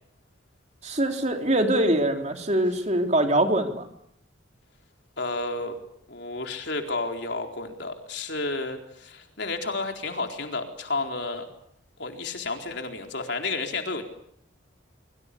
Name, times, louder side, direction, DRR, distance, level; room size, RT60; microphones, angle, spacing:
voice 1, 0.8-3.9, right 1 dB, 35° right, 4 dB, 3.5 m, -23 dB
voice 2, 5.2-5.7 6.1-11.5 12.0-14.0, left 3 dB, 60° left, 4 dB, 4.2 m, -31 dB
26.0 x 24.0 x 8.5 m, 0.71 s
head